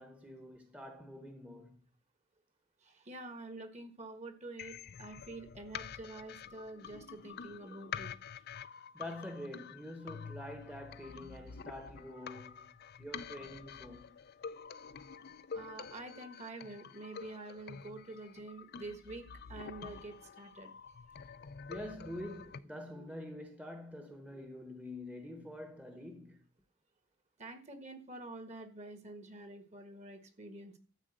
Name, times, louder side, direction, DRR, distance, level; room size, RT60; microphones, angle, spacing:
voice 1, 0.0-1.8 8.7-12.7 13.0-14.1 21.7-26.4, left 1 dB, 5° right, 1.1 m, -46 dB
voice 2, 2.8-8.1 15.5-20.7 27.4-30.8, right 2 dB, 30° right, 1.5 m, -47 dB
sound 1, 4.6-22.6, left 6 dB, 50° left, 0.5 m, -48 dB
12.5 x 4.9 x 7.8 m
head